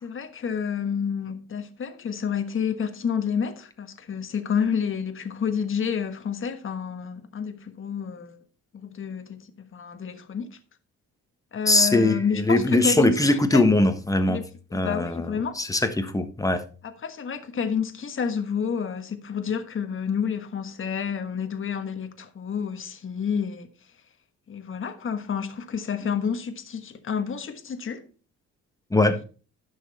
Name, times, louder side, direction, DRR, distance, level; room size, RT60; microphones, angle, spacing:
voice 1, 0.0-8.4 8.7-10.6 11.5-13.6 14.3-14.4 14.7-15.5 16.8-23.7 24.5-28.0, left 7 dB, 40° left, 1.3 m, -29 dB
voice 2, 11.7-14.4 14.7-16.6 28.9-29.2, left 2 dB, 10° left, 1.3 m, -21 dB
10.5 x 6.4 x 4.2 m
cardioid pair, 90°, 30 cm